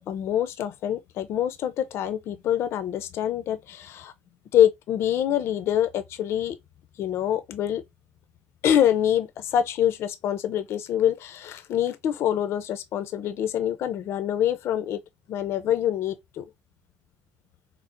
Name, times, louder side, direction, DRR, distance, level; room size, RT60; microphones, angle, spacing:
voice 1, 0.0-4.1 4.5-6.6 7.0-7.8 8.6-15.0 15.3-16.4, left 10 dB, 55° left, 0.4 m, -25 dB
4.3 x 2.0 x 2.5 m
hypercardioid pair, 55°, 5 cm